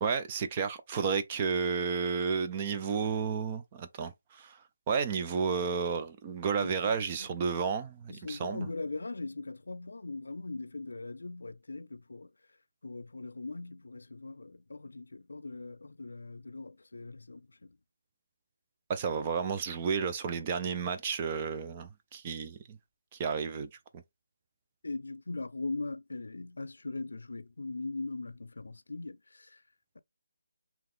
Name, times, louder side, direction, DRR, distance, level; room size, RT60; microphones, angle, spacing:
voice 1, 0.0-4.6 4.9-8.7 18.9-22.8 23.1-24.0, right 6 dB, 15° right, 0.3 m, -32 dB
voice 2, 6.6-7.3 8.1-12.3 12.8-17.8 24.8-29.6, left 3 dB, 85° left, 0.4 m, -40 dB
3.9 x 2.9 x 3.1 m
hypercardioid pair, 175°, 0 cm